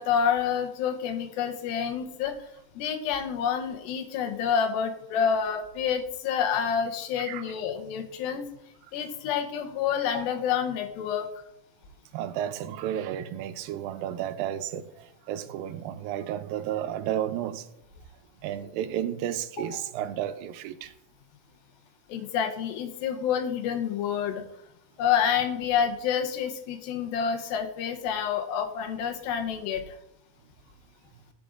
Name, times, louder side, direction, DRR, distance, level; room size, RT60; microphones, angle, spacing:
voice 1, 0.0-2.4 2.8-8.5 8.9-11.3 19.6-19.8 22.1-24.4 25.0-30.0, left 7 dB, 85° left, 2.6 m, -28 dB
voice 2, 7.2-7.5 12.1-17.7 18.4-20.9, right 10 dB, 85° right, 2.3 m, -32 dB
14.0 x 5.0 x 2.4 m
omnidirectional pair, 4.1 m